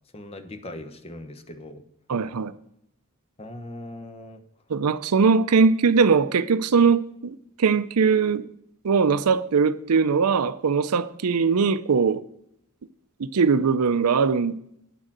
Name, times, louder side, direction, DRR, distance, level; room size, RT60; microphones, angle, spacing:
voice 1, 0.1-1.8 3.4-4.4, left 1 dB, 25° left, 0.9 m, -39 dB
voice 2, 2.1-2.5 4.7-8.5 8.8-12.2 13.2-14.6, right 5 dB, 90° right, 0.5 m, -21 dB
10.0 x 6.5 x 7.4 m
head